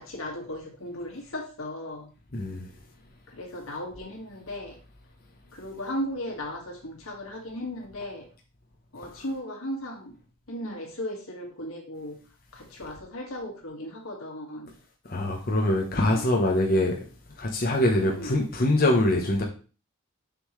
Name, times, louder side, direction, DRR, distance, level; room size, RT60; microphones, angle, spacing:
voice 1, 0.0-2.1 3.3-4.8 5.5-8.3 8.9-10.2 10.5-12.2 12.5-14.7 15.9-16.3 18.0-18.4, left 1 dB, 90° left, 2.0 m, -36 dB
voice 2, 2.3-2.7 15.0-17.0 17.4-19.4, left 1 dB, 45° left, 1.0 m, -23 dB
6.9 x 5.6 x 3.2 m
head